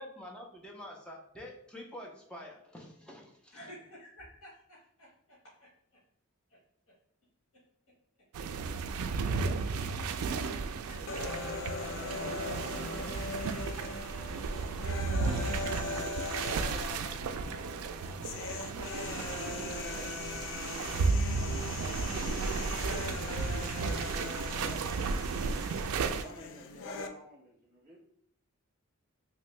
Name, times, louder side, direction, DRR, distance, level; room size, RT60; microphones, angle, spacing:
voice 1, 0.0-3.6, left 1 dB, 5° left, -2 dB, 0.5 m, -47 dB
voice 2, 3.5-6.0 6.5-6.6 6.9-7.0 9.4-11.6, right 1 dB, 75° left, -7 dB, 1.2 m, -52 dB
sound 1, 8.3-26.2, right 4 dB, 75° right, 0.3 m, -34 dB
sound 2, 11.1-27.1, left 4 dB, 60° left, 0.3 m, -40 dB
voice 3, 11.9-12.8 13.3-13.6 14.4-16.2 16.5-17.5 17.8-18.3 18.9-20.9 24.4-25.0 26.2-28.0, right 1 dB, 40° right, -4 dB, 1.3 m, -53 dB
3.0 x 2.7 x 3.1 m, 0.65 s
head